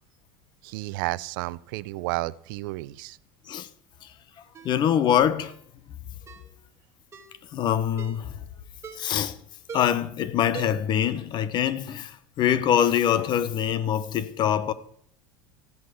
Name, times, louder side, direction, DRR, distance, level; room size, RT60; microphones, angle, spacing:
voice 1, 0.6-3.2, right 20 dB, 75° right, 0.6 m, -32 dB
Ringtone, 4.5-4.8 5.4-5.6 6.3-6.5 7.1-7.4 8.0-8.3 8.8-9.2 9.7-10.1 10.5-11.0 11.3-11.4, right 5 dB, 25° right, 2.3 m, -41 dB
voice 2, 4.6-5.6 7.5-8.4 9.0-9.4 9.7-14.7, left 9 dB, 40° left, 1.2 m, -24 dB
15.0 x 8.3 x 7.9 m
supercardioid pair, 120°, 11 cm